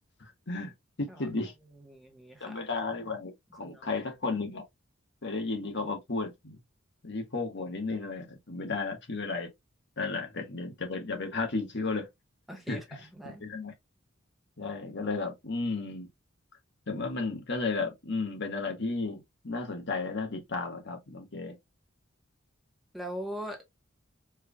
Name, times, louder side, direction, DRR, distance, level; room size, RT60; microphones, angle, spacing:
voice 1, 0.2-0.7 1.0-1.5 2.4-4.6 5.2-6.6 7.0-9.5 10.0-12.1 12.7-12.8 13.2-13.7 14.6-16.1 16.9-21.6, left 3 dB, 60° left, 1.3 m, -33 dB
voice 2, 1.7-2.6 3.6-4.0 12.5-12.8 13.1-13.4 22.9-23.7, equal, ahead, 1.0 m, -41 dB
4.5 x 3.3 x 2.2 m
head